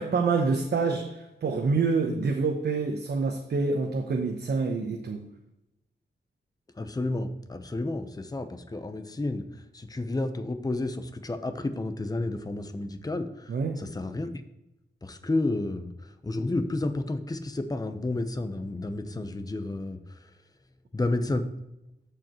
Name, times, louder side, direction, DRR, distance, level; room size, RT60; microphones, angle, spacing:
voice 1, 0.0-5.2 13.5-13.8, right 4 dB, 65° right, 2 dB, 1.0 m, -27 dB
voice 2, 6.8-9.4 9.7-14.3 15.0-15.9 16.2-20.0 20.9-21.5, left 2 dB, 20° left, 8 dB, 0.8 m, -31 dB
14.0 x 4.9 x 3.1 m, 0.90 s
cardioid pair, 70°, 18 cm